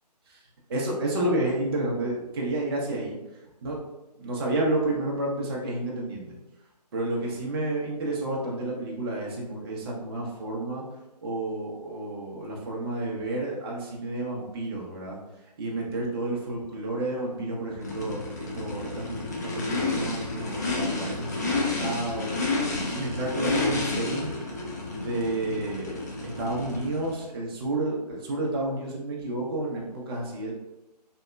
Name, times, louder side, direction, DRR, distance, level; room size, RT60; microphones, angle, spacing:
voice 1, 0.7-3.2 3.6-3.8 4.2-6.3 6.9-10.8 11.2-15.2 15.6-19.2 19.5-24.3 24.9-30.5, right 2 dB, 35° right, -3 dB, 0.5 m, -30 dB
Race car auto racing / Idling / Accelerating revving vroom, 17.8-27.2, left 3 dB, 25° left, 0.3 m, -31 dB
2.9 x 2.1 x 2.2 m, 0.98 s
figure-of-eight pair, 145°, 21 cm